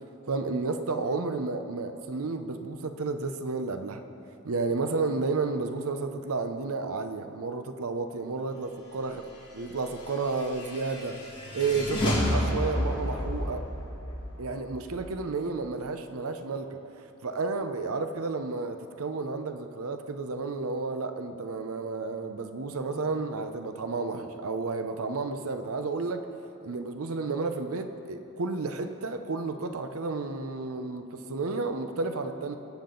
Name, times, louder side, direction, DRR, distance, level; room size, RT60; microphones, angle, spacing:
voice 1, 0.3-4.0 4.4-9.2 9.5-11.2 11.5-13.7 14.4-16.8 17.2-26.3 26.6-32.6, right 3 dB, 70° right, 8 dB, 0.7 m, -31 dB
sound 1, 9.9-15.5, equal, 20° left, 2.6 m, -31 dB
20.5 x 7.4 x 3.9 m, 2.8 s
head